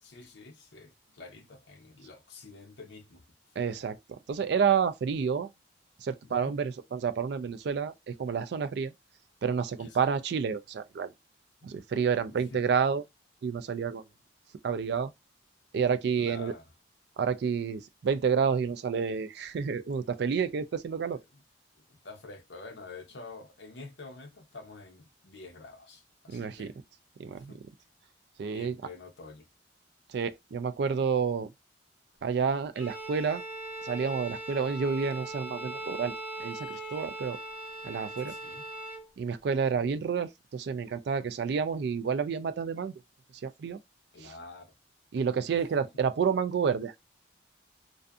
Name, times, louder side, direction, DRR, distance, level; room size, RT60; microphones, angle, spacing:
voice 1, 0.0-3.2 6.2-6.6 9.8-10.1 12.3-12.7 16.2-16.6 21.3-21.4 21.9-26.8 27.3-27.6 28.5-29.5 38.3-38.7 44.1-44.7 45.8-45.9, left 3 dB, 65° left, 0.7 m, -48 dB
voice 2, 3.6-4.0 4.3-5.5 6.0-8.9 9.4-11.1 11.6-13.0 13.4-14.0 14.6-15.1 15.7-16.5 17.2-21.2 26.3-26.7 27.2-27.5 28.4-28.8 30.1-31.5 32.2-33.4 33.8-36.1 36.4-37.4 37.8-38.3 39.2-42.9 43.4-43.8 44.2-44.3 45.1-47.0, right 6 dB, 60° right, 0.3 m, -29 dB
Bowed string instrument, 32.7-39.1, right 2 dB, 15° right, 1.6 m, -40 dB
2.5 x 2.5 x 2.3 m
head